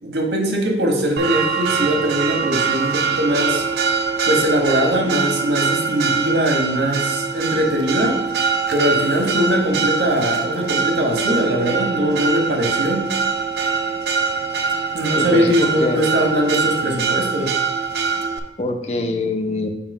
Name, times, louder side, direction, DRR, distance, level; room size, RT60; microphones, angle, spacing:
voice 1, 0.0-3.6 4.2-8.2 8.7-13.1 14.9-17.5, equal, 85° right, 1 dB, 1.4 m, -21 dB
Church bell, 1.2-18.4, right 5 dB, 70° right, 0.5 m, -23 dB
voice 2, 15.2-16.0 18.6-19.7, left 2 dB, 35° left, 4 dB, 0.6 m, -24 dB
7.2 x 2.9 x 5.3 m, 0.88 s
head